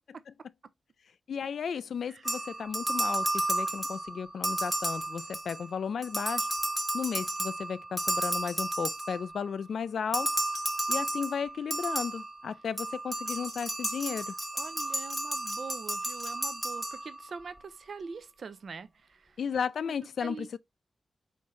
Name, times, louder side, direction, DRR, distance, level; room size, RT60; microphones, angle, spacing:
voice 1, 1.3-6.5 6.9-10.3 10.9-14.4 19.4-20.6, left 7 dB, 80° left, 0.3 m, -34 dB
sound 1, 2.2-5.7 6.0-9.5 10.1-17.4, right 1 dB, 10° right, 1.0 m, -33 dB
voice 2, 14.5-19.3 19.8-19.9 20.2-20.5, right 5 dB, 65° right, 0.5 m, -43 dB
4.4 x 3.6 x 3.0 m
wide cardioid pair, 85°, 0 cm